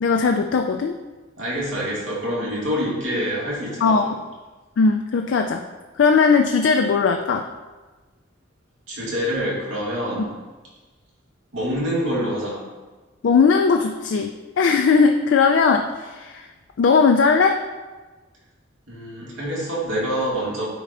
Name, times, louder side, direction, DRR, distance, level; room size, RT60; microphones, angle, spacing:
voice 1, 0.0-1.0 3.8-4.2 4.8-5.7 6.0-7.5 13.2-16.5 16.8-17.6, left 5 dB, 65° left, 4 dB, 0.3 m, -18 dB
voice 2, 1.4-4.1 8.9-10.3 11.5-12.6 18.9-20.7, equal, 75° right, -6 dB, 2.1 m, -26 dB
9.8 x 4.3 x 2.5 m, 1.3 s
head